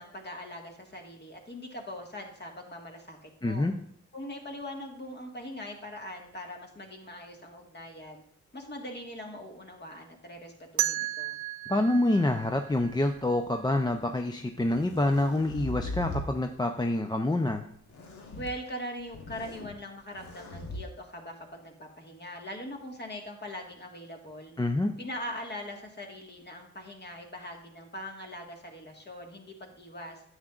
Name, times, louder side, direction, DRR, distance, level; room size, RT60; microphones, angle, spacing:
voice 1, 0.0-3.7 4.1-8.2 8.5-11.3 18.4-24.5 25.0-30.2, left 1 dB, 35° left, 1 dB, 1.7 m, -41 dB
voice 2, 3.4-3.7 11.7-17.7 24.6-24.9, left 1 dB, 15° left, 5 dB, 0.5 m, -27 dB
sound 1, 10.8-13.6, right 14 dB, 80° right, 0.5 m, -34 dB
sound 2, 12.9-13.5 14.4-16.3 17.9-18.5 19.0-19.7 20.1-20.8, left 1 dB, 80° left, 1.3 m, -39 dB
9.6 x 7.7 x 2.4 m, 0.67 s
cardioid pair, 75°, 29 cm